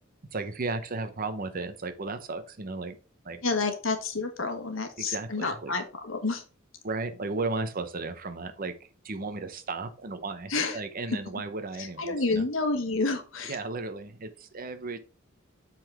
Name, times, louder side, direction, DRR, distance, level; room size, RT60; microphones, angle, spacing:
voice 1, 0.3-3.0 3.2-3.4 5.0-5.7 6.8-8.7 9.0-12.5 13.5-15.0, right 3 dB, 45° right, 9 dB, 0.8 m, -34 dB
voice 2, 3.4-6.4 10.5-10.8 11.8-13.6, left 3 dB, 75° left, 6 dB, 1.3 m, -29 dB
7.5 x 4.0 x 4.3 m, 0.35 s
head